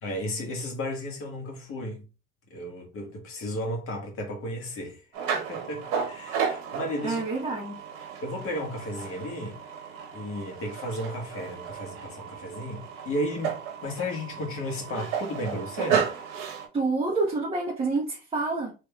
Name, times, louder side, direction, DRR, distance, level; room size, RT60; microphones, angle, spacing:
voice 1, 0.0-2.0 2.5-5.0 5.3-7.2 8.2-9.6 10.1-13.6 13.8-16.1, left 1 dB, 45° left, 1.6 m, -34 dB
sound 1, 5.1-16.7, right 7 dB, 65° right, 1.0 m, -33 dB
voice 2, 7.0-7.8 16.7-18.7, right 3 dB, 20° right, 1.2 m, -28 dB
3.4 x 3.2 x 2.3 m
hypercardioid pair, 80°, 30 cm